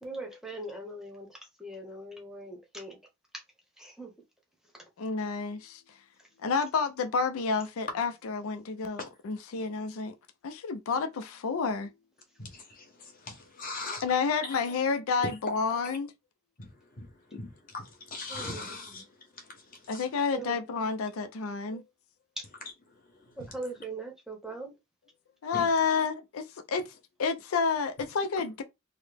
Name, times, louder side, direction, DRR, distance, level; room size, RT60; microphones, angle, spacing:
voice 1, 0.0-3.0 3.3-3.4 3.8-4.1 18.3-18.7 20.3-20.6 22.4-22.5 23.4-24.7, right 2 dB, ahead, 0.8 m, -40 dB
voice 2, 5.0-5.8 6.4-10.2 10.4-11.9 14.0-16.1 19.9-21.8 25.4-26.9 27.2-28.6, left 5 dB, 85° left, 0.4 m, -30 dB
voice 3, 12.4-14.0 14.4-14.6 15.8-15.9 16.6-20.1 22.9-23.5 25.5-25.7, left 3 dB, 40° left, 1.0 m, -42 dB
3.8 x 2.1 x 3.3 m
head